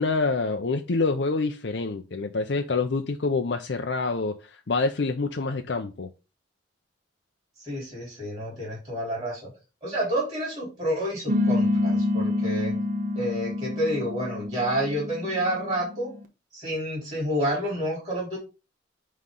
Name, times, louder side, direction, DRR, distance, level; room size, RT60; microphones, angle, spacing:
voice 1, 0.0-6.1, left 3 dB, 70° left, 0.6 m, -26 dB
voice 2, 7.6-9.5 9.8-12.8 13.1-16.1 16.5-18.4, equal, 20° right, 3.8 m, -29 dB
sound 1, 11.3-16.2, left 2 dB, 45° right, 1.0 m, -27 dB
9.4 x 3.2 x 3.8 m
head